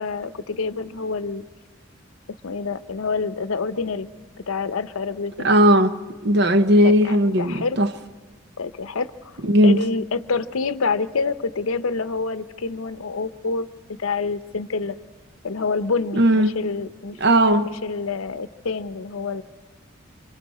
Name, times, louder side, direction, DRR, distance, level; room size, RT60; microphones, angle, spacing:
voice 1, 0.0-1.4 2.3-4.1 4.5-5.5 6.7-7.8 8.6-9.3 9.6-13.7 14.0-15.0 15.4-17.2 17.6-19.4, left 4 dB, 80° left, 0.7 m, -27 dB
voice 2, 5.4-5.9 6.2-7.9 9.4-9.8 16.1-16.6 17.2-17.7, equal, 50° right, 0.8 m, -17 dB
27.0 x 26.0 x 4.2 m
head